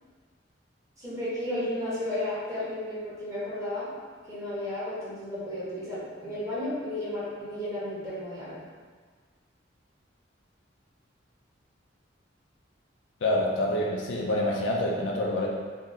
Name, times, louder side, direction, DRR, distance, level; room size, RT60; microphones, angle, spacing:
voice 1, 1.0-3.9 4.3-8.6, left 1 dB, 20° right, -10 dB, 1.0 m, -33 dB
voice 2, 13.2-15.5, left 1 dB, 75° left, -1 dB, 0.4 m, -27 dB
3.7 x 2.1 x 2.6 m, 1.6 s
head